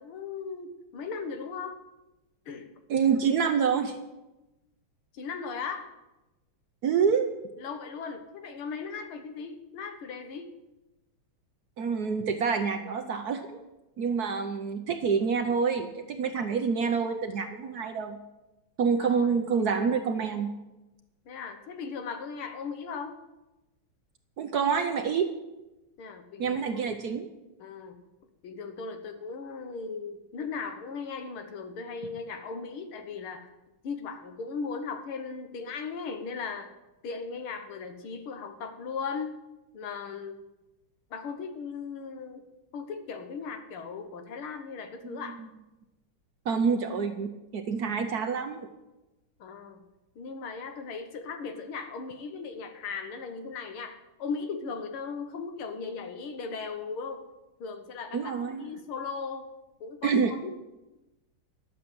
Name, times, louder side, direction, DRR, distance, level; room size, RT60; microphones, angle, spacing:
voice 1, 0.0-1.8 2.5-2.7 5.1-5.9 7.6-10.5 19.0-19.4 21.3-23.2 26.0-27.0 27.6-28.0 28.4-33.5 33.8-36.7 37.0-39.3 39.7-40.4 41.1-42.5 42.7-45.4 49.4-49.8 50.2-57.3 57.6-59.5 59.8-60.5, left 5 dB, 80° left, 7 dB, 2.0 m, -37 dB
voice 2, 2.9-4.0 6.8-7.3 11.8-13.6 14.0-18.2 18.8-20.5 24.4-25.3 26.4-27.3 45.1-45.2 46.5-48.7 58.1-58.7 60.0-60.3, right 6 dB, 60° right, 6 dB, 1.1 m, -27 dB
11.5 x 7.0 x 7.7 m, 1.0 s
omnidirectional pair, 2.3 m